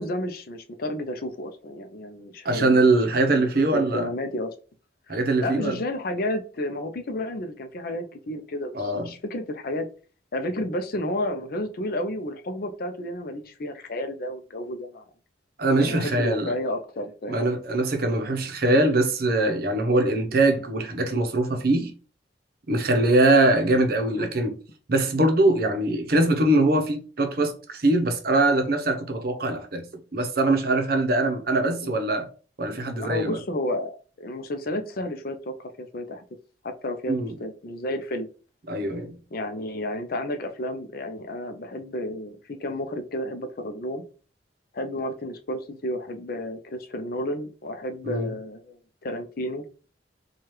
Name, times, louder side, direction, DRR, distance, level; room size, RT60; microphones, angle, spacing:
voice 1, 0.0-2.9 3.3-4.5 5.1-9.9 10.3-15.1 15.8-17.4 24.1-24.3 31.6-31.9 32.9-36.2 36.6-38.3 39.3-44.0 44.7-49.6, left 1 dB, 55° left, 0.5 m, -32 dB
voice 2, 2.4-4.1 5.1-5.8 8.7-9.1 15.6-16.5 17.3-21.9 22.7-24.5 24.9-29.8 30.1-32.3 32.6-33.4 37.1-37.3 38.7-39.2 48.1-48.3, right 2 dB, 55° right, 0.7 m, -22 dB
4.7 x 2.3 x 3.0 m
head